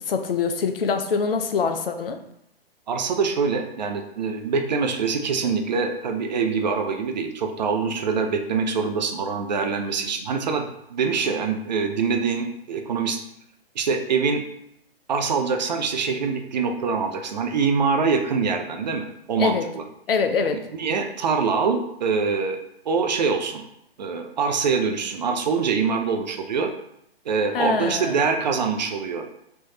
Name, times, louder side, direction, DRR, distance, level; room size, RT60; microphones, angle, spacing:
voice 1, 0.1-2.2 19.4-19.6 20.1-20.6 27.5-28.3, left 5 dB, 65° left, 7 dB, 0.5 m, -24 dB
voice 2, 2.9-13.2 13.8-14.4 15.1-19.8 20.8-22.6 22.9-23.6 24.0-26.7 27.3-29.2, right 5 dB, 45° right, 5 dB, 0.4 m, -24 dB
3.3 x 3.0 x 2.7 m, 0.76 s
figure-of-eight pair, 130°, 31 cm